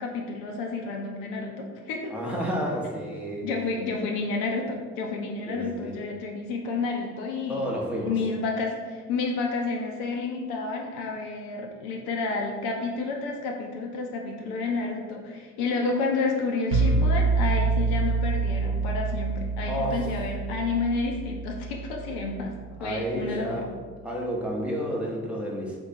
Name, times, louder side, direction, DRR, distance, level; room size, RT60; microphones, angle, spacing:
voice 1, 0.0-2.1 3.4-7.7 8.0-22.5 22.8-23.6, left 3 dB, 60° left, 1 dB, 0.8 m, -30 dB
voice 2, 2.1-3.5 5.4-6.0 7.5-8.1 19.7-20.0 22.8-23.7 24.0-25.8, equal, 5° right, -3 dB, 0.9 m, -30 dB
sound 1, 16.7-22.5, right 3 dB, 60° right, 1.1 m, -26 dB
4.4 x 2.7 x 4.3 m, 1.5 s
figure-of-eight pair, 55°, 46 cm